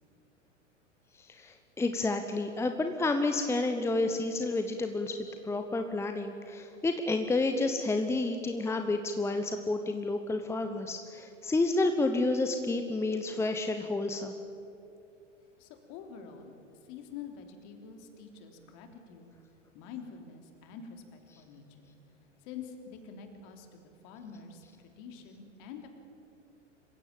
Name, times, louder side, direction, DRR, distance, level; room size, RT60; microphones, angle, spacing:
voice 1, 1.2-14.3, left 2 dB, 5° left, 7 dB, 1.0 m, -30 dB
voice 2, 15.6-16.5 16.8-19.3 19.7-21.9 22.4-25.9, left 6 dB, 45° left, 5 dB, 3.5 m, -47 dB
26.5 x 15.5 x 8.9 m, 2.7 s
figure-of-eight pair, 95°, 37 cm